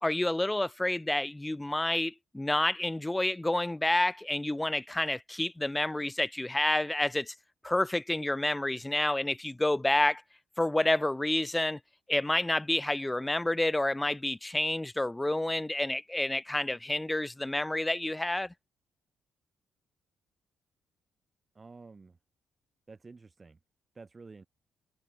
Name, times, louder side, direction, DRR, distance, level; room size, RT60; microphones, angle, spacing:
voice 1, 0.0-7.3 7.6-10.2 10.6-11.8 12.1-18.5, left 1 dB, 10° left, 0.7 m, -29 dB
voice 2, 21.5-22.2 22.9-23.6 23.9-24.5, right 4 dB, 30° right, 2.7 m, -50 dB
cardioid pair, 90°, 0 cm